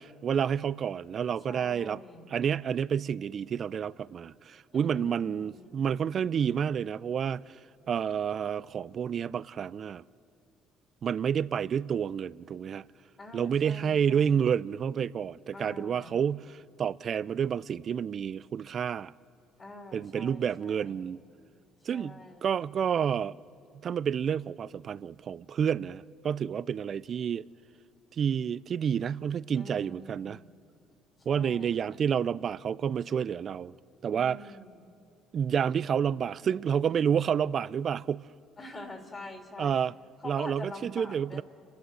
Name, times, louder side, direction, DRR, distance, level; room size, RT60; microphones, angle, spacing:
voice 1, 0.0-2.0 2.3-7.6 7.9-10.0 11.0-12.9 13.3-19.1 19.9-21.2 21.9-22.2 22.4-23.4 23.8-27.5 28.2-30.4 31.3-33.7 34.0-34.4 35.3-38.3 39.6-39.9 40.2-41.4, right 8 dB, 50° right, 0.4 m, -29 dB
voice 2, 1.5-2.3 4.7-5.8 13.2-14.5 15.5-16.2 19.6-21.1 21.9-22.6 29.5-30.4 31.2-32.0 34.1-35.0 38.6-39.7 40.2-41.4, left 2 dB, 30° left, 2.6 m, -46 dB
29.0 x 11.5 x 7.7 m
supercardioid pair, 70°, 0 cm